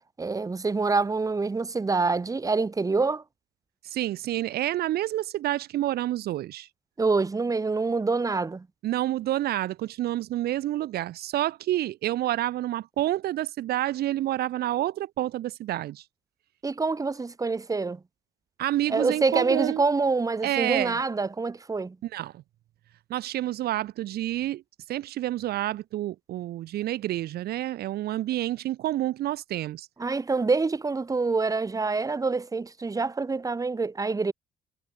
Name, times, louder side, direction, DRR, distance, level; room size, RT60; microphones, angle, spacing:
voice 1, 0.2-3.2 7.0-8.7 16.6-18.0 18.9-22.0 30.0-34.3, right 4 dB, 20° right, 2.6 m, -26 dB
voice 2, 3.8-6.7 8.8-16.0 18.6-19.8 20.4-21.0 22.0-22.4 23.1-24.6 24.9-29.9, right 14 dB, 70° right, 1.5 m, -28 dB
cardioid pair, 110°, 17 cm